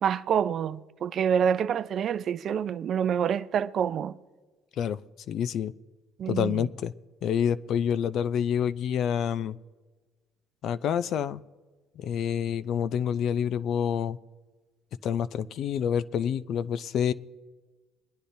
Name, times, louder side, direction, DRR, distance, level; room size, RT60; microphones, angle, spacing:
voice 1, 0.0-4.2 6.2-6.7, right 8 dB, 50° right, 0.4 m, -27 dB
voice 2, 5.3-5.7 6.3-6.9 7.2-9.6 10.6-11.4 12.0-14.2 15.0-17.1, left 8 dB, 60° left, 0.4 m, -27 dB
23.5 x 10.0 x 2.7 m
cardioid pair, 110°, 0 cm